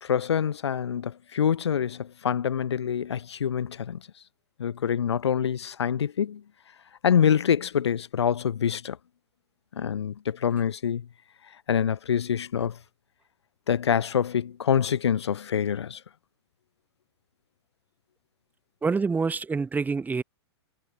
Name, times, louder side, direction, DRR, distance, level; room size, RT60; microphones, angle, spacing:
voice 1, 0.0-4.0 4.6-6.4 7.0-9.0 9.8-11.1 11.7-12.8 13.7-16.0, left 8 dB, 75° left, 1.9 m, -26 dB
voice 2, 18.8-20.2, right 4 dB, 10° right, 1.6 m, -26 dB
hypercardioid pair, 110°, 14 cm